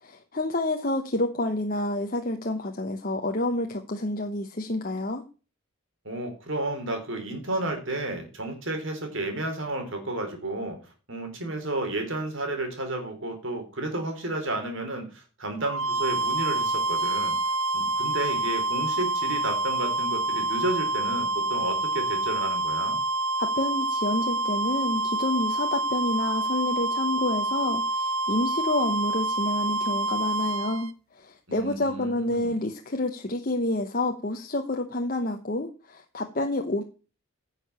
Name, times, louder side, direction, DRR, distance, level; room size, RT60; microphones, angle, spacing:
voice 1, 0.0-5.2 23.4-36.8, left 1 dB, 40° left, 3 dB, 1.0 m, -29 dB
voice 2, 6.1-10.8 11.1-17.3 17.7-23.0 31.5-32.5, right 2 dB, 60° right, 5 dB, 3.8 m, -32 dB
sound 1, 15.6-30.9, right 2 dB, 75° right, 0.9 m, -27 dB
10.5 x 6.7 x 6.8 m, 0.35 s
head